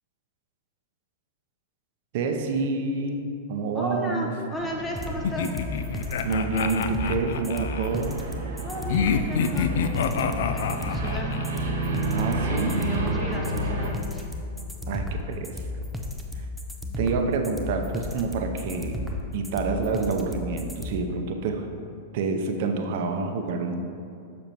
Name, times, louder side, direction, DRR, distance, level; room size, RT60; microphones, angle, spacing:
voice 1, 2.1-4.3 6.2-8.2 12.1-12.8 14.9-15.6 17.0-19.0 19.3-21.6 22.1-23.8, right 4 dB, 60° right, 4 dB, 0.7 m, -28 dB
voice 2, 3.7-5.5 8.6-11.3 12.7-14.3, equal, 15° left, -1 dB, 0.9 m, -34 dB
sound 1, 4.6-13.9, right 2 dB, 75° right, 1.1 m, -32 dB
sound 2, 4.9-20.9, left 2 dB, ahead, 0.6 m, -33 dB
sound 3, 5.2-7.9 8.9-11.5, left 7 dB, 70° left, 0.3 m, -27 dB
6.9 x 6.0 x 3.0 m, 2.5 s
hypercardioid pair, 115°, 0 cm